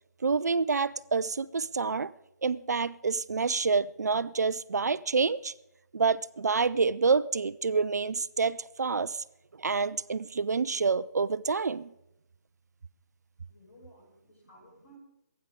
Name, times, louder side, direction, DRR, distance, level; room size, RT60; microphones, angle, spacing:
voice 1, 0.2-2.1 2.4-5.5 5.9-9.2 9.6-11.9, right 4 dB, 65° right, 0.5 m, -28 dB
voice 2, 13.5-15.0, right 1 dB, 45° left, 7.2 m, -56 dB
25.0 x 9.6 x 3.8 m
figure-of-eight pair, 150°, 10 cm